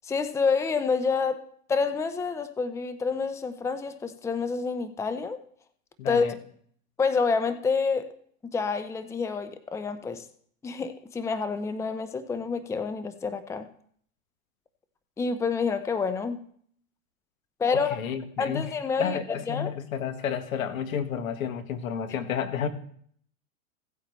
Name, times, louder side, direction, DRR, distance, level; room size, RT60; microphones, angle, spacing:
voice 1, 0.0-1.4 1.7-5.4 6.1-6.3 7.0-8.1 8.4-10.3 10.6-13.7 15.2-16.4 17.6-18.0 18.4-19.2 19.5-19.7, left 5 dB, 5° left, 10 dB, 0.6 m, -28 dB
voice 2, 6.0-6.3 17.7-18.7 19.0-22.7, left 7 dB, 80° left, 8 dB, 1.6 m, -31 dB
16.5 x 8.6 x 3.1 m, 0.62 s
hypercardioid pair, 115°, 40 cm